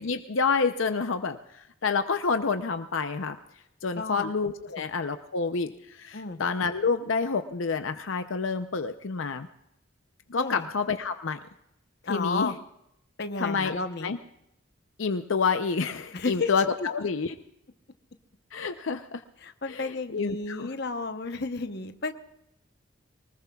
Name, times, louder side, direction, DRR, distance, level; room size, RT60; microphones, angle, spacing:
voice 1, 0.0-3.4 3.8-9.5 10.3-11.4 12.1-12.5 13.4-14.2 15.0-17.3 18.5-19.2 19.7-20.7, left 5 dB, 75° left, 8 dB, 0.6 m, -28 dB
voice 2, 4.0-4.3 6.1-6.4 10.4-10.7 12.1-12.6 13.2-14.1 16.1-16.5 16.8-16.9 19.4-22.1, left 3 dB, 50° left, 8 dB, 0.9 m, -32 dB
23.5 x 20.0 x 2.4 m, 0.80 s
head